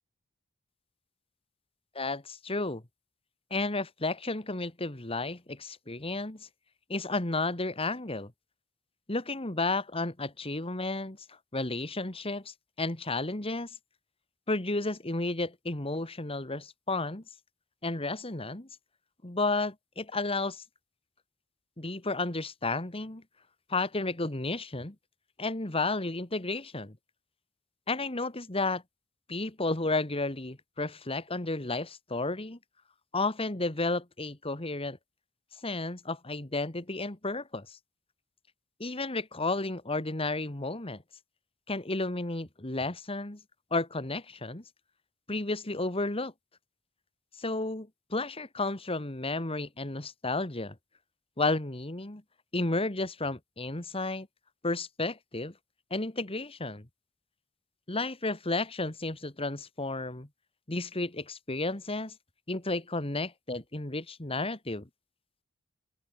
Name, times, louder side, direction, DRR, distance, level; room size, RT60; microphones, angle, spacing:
voice 1, 2.0-2.8 3.5-6.5 6.9-8.3 9.1-13.7 14.5-17.2 17.8-18.7 19.2-20.6 21.8-23.2 23.7-25.0 25.4-27.0 27.9-28.8 29.3-32.6 33.1-35.0 35.6-37.8 38.8-41.0 41.7-43.4 43.7-44.6 45.3-46.3 47.4-50.8 51.4-52.2 52.5-54.3 54.6-55.5 55.9-56.9 57.9-60.3 60.7-62.1 62.5-64.9, left 2 dB, 25° left, 1.9 m, -32 dB
open air
head